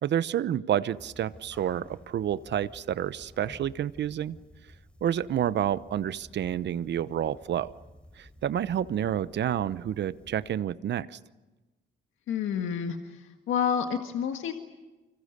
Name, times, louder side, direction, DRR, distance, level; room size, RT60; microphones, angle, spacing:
voice 1, 0.0-4.4 5.0-7.7 8.2-11.2, right 10 dB, 60° right, 16 dB, 0.9 m, -29 dB
sound 1, 0.9-10.6, equal, 5° left, 3.9 m, -53 dB
voice 2, 12.3-14.5, left 8 dB, 80° left, 5 dB, 1.8 m, -29 dB
29.5 x 25.5 x 6.7 m, 1.1 s
cardioid pair, 90°, 20 cm